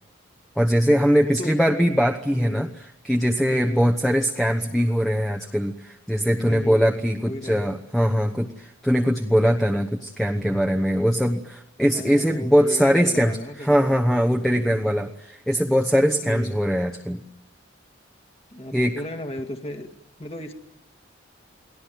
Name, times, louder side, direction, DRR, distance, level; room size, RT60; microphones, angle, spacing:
voice 1, 0.6-2.7 3.0-17.2 18.7-18.9, equal, ahead, 4 dB, 1.0 m, -21 dB
voice 2, 2.3-2.8 3.5-3.9 6.4-7.7 11.9-14.0 14.5-14.9 16.2-16.6 18.5-19.9 20.2-20.5, left 1 dB, 30° left, 5 dB, 1.8 m, -35 dB
29.5 x 19.5 x 9.4 m, 0.89 s
head